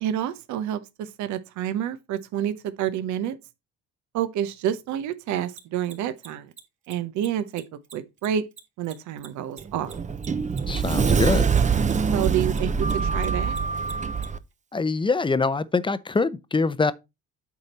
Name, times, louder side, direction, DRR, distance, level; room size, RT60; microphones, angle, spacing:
voice 1, 0.0-3.4 4.1-6.5 6.9-7.6 7.9-8.4 8.8-10.0 12.1-13.6, right 10 dB, 65° right, 0.8 m, -28 dB
Mechanisms, 5.5-12.3 12.5-14.3, right 5 dB, 40° right, 2.4 m, -44 dB
Sliding door, 9.6-14.4, right 5 dB, 25° right, 0.7 m, -24 dB
voice 2, 10.7-11.5 14.7-16.9, left 4 dB, 15° left, 0.7 m, -24 dB
8.5 x 4.3 x 4.1 m
supercardioid pair, 80°, 31 cm